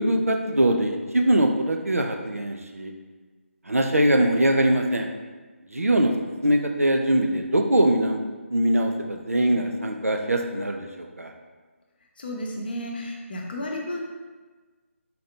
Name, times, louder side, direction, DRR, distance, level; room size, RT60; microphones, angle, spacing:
voice 1, 0.0-2.9 3.7-5.1 5.7-6.1 6.4-8.2 8.5-11.3, right 1 dB, 90° right, 3 dB, 0.5 m, -22 dB
voice 2, 12.2-14.1, left 1 dB, 40° left, 0 dB, 0.7 m, -32 dB
4.2 x 2.7 x 3.3 m, 1.3 s
figure-of-eight pair, 155°, 8 cm